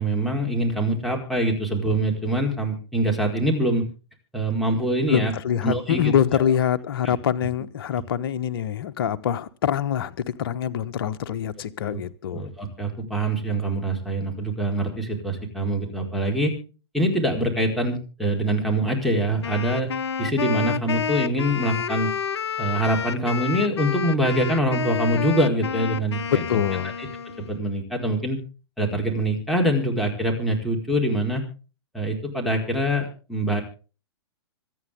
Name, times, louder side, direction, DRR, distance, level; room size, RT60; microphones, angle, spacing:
voice 1, 0.0-3.9 4.3-5.3 5.6-6.1 7.0-7.1 11.8-12.0 12.3-16.5 16.9-19.9 20.2-22.1 22.6-26.4 27.0-27.1 27.4-28.4 28.8-31.4 31.9-33.6, right 1 dB, ahead, 4.5 m, -24 dB
voice 2, 5.1-12.5 26.3-27.0, left 9 dB, 55° left, 1.2 m, -24 dB
Wind instrument woodwind instrument, 19.4-27.6, left 6 dB, 70° left, 0.7 m, -29 dB
26.0 x 9.5 x 3.6 m
figure-of-eight pair, 110°, 14 cm